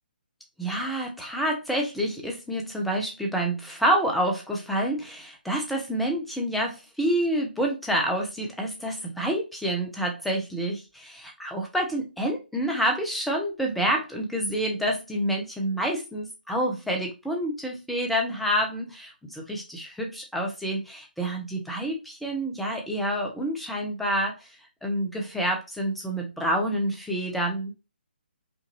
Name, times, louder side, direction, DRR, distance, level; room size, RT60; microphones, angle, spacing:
voice 1, 0.6-24.5 24.8-27.7, right 1 dB, ahead, 1 dB, 0.7 m, -28 dB
5.2 x 2.6 x 3.0 m, 0.28 s
figure-of-eight pair, 140°, 6 cm